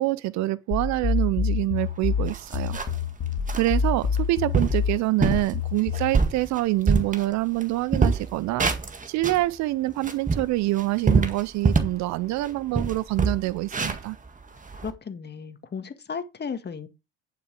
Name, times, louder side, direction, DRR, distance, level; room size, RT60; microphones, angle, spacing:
voice 1, 0.0-2.8 3.5-8.7 9.1-14.2, right 18 dB, 55° right, 0.6 m, -26 dB
sound 1, 0.7-6.2, left 6 dB, 50° left, 2.2 m, -27 dB
sound 2, 1.8-1.9 2.3-3.1 3.5-3.7 4.2-4.3 4.5-4.8 5.2-5.5 5.9-7.6 7.9-9.5 9.9-12.0 12.4-12.5 12.7-14.9, right 4 dB, 25° right, 1.8 m, -24 dB
voice 2, 14.7-16.9, left 6 dB, 30° left, 1.8 m, -35 dB
10.5 x 6.1 x 4.8 m
hypercardioid pair, 70°, 33 cm